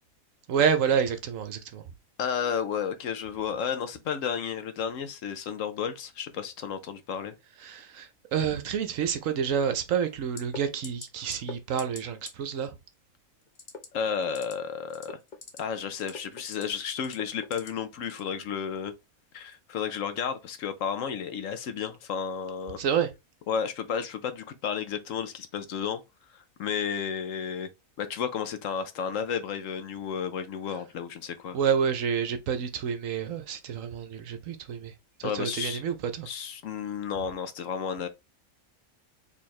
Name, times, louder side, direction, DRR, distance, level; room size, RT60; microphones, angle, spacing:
voice 1, 0.5-1.8 7.6-12.7 22.8-23.1 31.5-34.9 35.2-36.3, right 7 dB, 65° right, 1.0 m, -28 dB
voice 2, 2.2-7.3 13.9-15.2 15.6-18.9 19.3-22.8 23.5-26.0 26.3-27.7 28.0-31.6 35.2-35.8 36.3-38.1, left 7 dB, 65° left, 1.0 m, -32 dB
sound 1, 10.4-10.6 10.8-11.1 11.3-11.5 11.8-12.0 12.3-12.4 13.6-13.9 14.2-14.5 14.9-15.6 16.0-16.6 17.0-17.7 18.1-18.3, left 4 dB, 35° left, 0.9 m, -40 dB
4.4 x 3.5 x 3.1 m
omnidirectional pair, 1.5 m